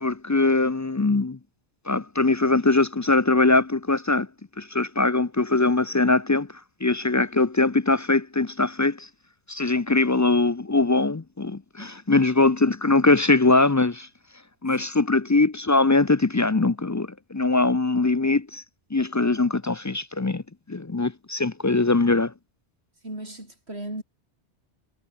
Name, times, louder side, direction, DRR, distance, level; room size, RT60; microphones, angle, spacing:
voice 1, 0.0-1.4 1.9-4.3 4.6-6.5 6.8-9.1 9.5-14.1 14.6-18.6 18.9-20.4 20.7-22.3, left 3 dB, 25° left, 0.4 m, -22 dB
voice 2, 23.0-24.0, right 1 dB, 65° right, 7.7 m, -37 dB
omnidirectional pair, 1.2 m